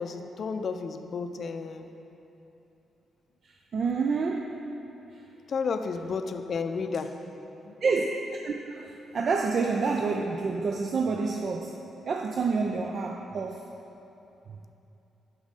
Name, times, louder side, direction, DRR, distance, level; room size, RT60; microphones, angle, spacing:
voice 1, 0.0-1.9 5.5-7.2 7.6-7.7, left 5 dB, 55° left, 7 dB, 0.4 m, -32 dB
voice 2, 3.4-4.5 5.1-5.2 7.8-8.1 8.4-11.7 12.1-13.7, right 4 dB, 55° right, 2 dB, 0.4 m, -28 dB
6.3 x 6.0 x 4.0 m, 2.9 s
hypercardioid pair, 45°, 0 cm